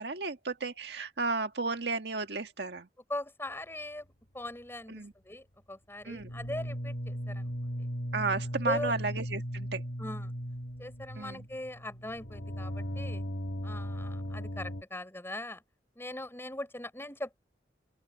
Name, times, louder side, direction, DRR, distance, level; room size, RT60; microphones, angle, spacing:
voice 1, 0.0-2.9 4.9-5.1 6.0-6.3 8.1-9.8 11.2-11.4, right 3 dB, 70° right, 1.8 m, -33 dB
voice 2, 3.1-4.1 4.3-7.9 8.6-8.9 10.0-10.3 10.8-13.2 13.6-15.6 16.0-17.4, left 1 dB, 15° left, 5.5 m, -40 dB
sound 1, 6.1-14.8, equal, 65° left, 2.9 m, -37 dB
open air
head